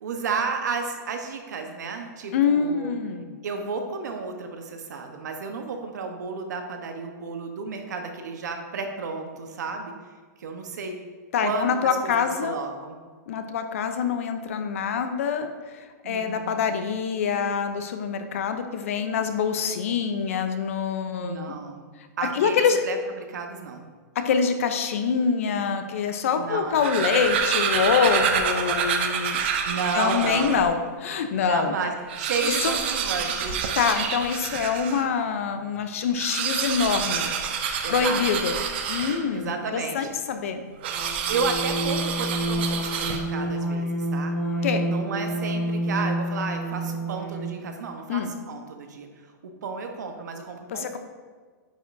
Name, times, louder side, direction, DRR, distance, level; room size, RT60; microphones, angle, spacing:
voice 1, 0.0-2.9 3.4-9.9 10.4-10.9 11.4-11.7 12.0-13.0 16.0-16.5 21.2-21.9 22.2-23.9 26.3-26.9 29.4-30.6 31.4-33.6 37.8-38.5 39.3-40.1 41.3-44.3 44.8-49.1 49.6-51.0, right 4 dB, 75° right, 5 dB, 0.9 m, -32 dB
voice 2, 2.3-3.3 11.3-12.6 13.3-21.5 22.3-22.8 24.2-29.4 29.9-31.7 32.5-32.8 33.7-37.3 37.9-38.5 38.9-40.6 44.6-44.8 48.1-48.3 50.7-51.0, left 6 dB, 50° left, 8 dB, 0.5 m, -25 dB
sound 1, 26.6-30.7 31.3-31.4 31.6-31.7 32.0-35.1 36.1-39.5 40.8-43.5, right 7 dB, 35° right, 0.5 m, -28 dB
sound 2, 40.9-47.7, right 1 dB, 10° left, 0.8 m, -29 dB
9.2 x 5.1 x 2.6 m, 1.5 s
supercardioid pair, 175°, 10 cm